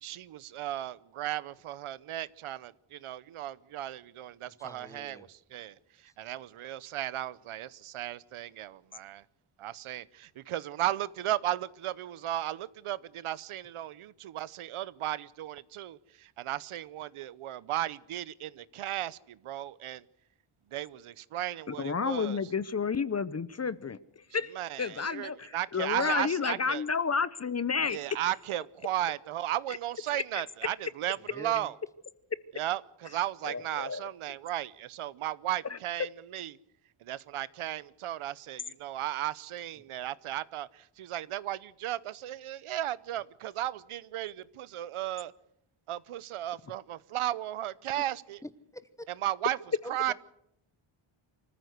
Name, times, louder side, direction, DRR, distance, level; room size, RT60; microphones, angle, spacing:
voice 1, 0.0-9.2 9.6-20.0 20.7-22.4 24.5-26.8 27.9-31.7 32.5-36.5 37.0-45.3 45.9-48.4 49.2-49.6 49.9-50.1, right 13 dB, 85° right, 19 dB, 0.8 m, -35 dB
voice 2, 4.5-5.3 31.2-31.7 48.4-49.1 49.8-50.1, left 1 dB, 5° left, 13 dB, 1.3 m, -46 dB
voice 3, 21.7-28.0 30.3-30.4 33.4-34.1 35.7-35.8, left 5 dB, 30° left, 17 dB, 0.7 m, -31 dB
25.0 x 14.5 x 8.0 m, 0.76 s
wide cardioid pair, 115°, 50 cm